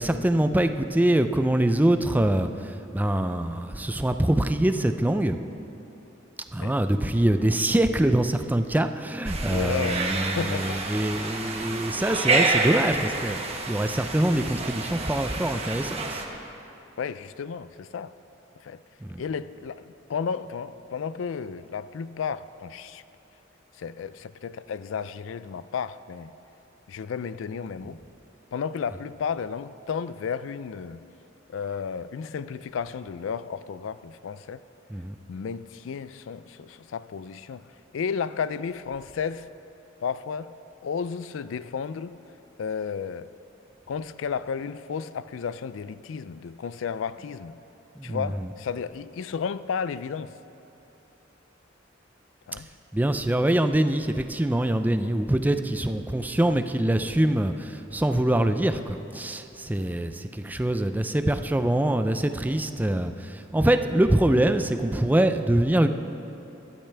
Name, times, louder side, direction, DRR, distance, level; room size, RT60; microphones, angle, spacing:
voice 1, 0.0-5.4 6.5-13.4 13.7-16.2 19.0-19.2 34.9-35.1 48.0-48.2 52.9-63.1 63.5-65.9, right 1 dB, 10° right, 8 dB, 0.4 m, -24 dB
sound 1, 9.2-16.2, right 3 dB, 30° right, 1.2 m, -28 dB
voice 2, 9.5-10.1 10.4-10.8 17.0-18.1 18.6-18.8 19.2-23.0 23.8-26.3 26.9-28.0 28.5-31.0 31.5-34.6 35.3-39.5 40.0-40.5 40.8-42.2 42.6-43.3 43.9-47.6 48.0-50.3 52.5-52.7, left 6 dB, 75° left, 15 dB, 0.4 m, -33 dB
21.0 x 12.0 x 3.4 m, 2.9 s
head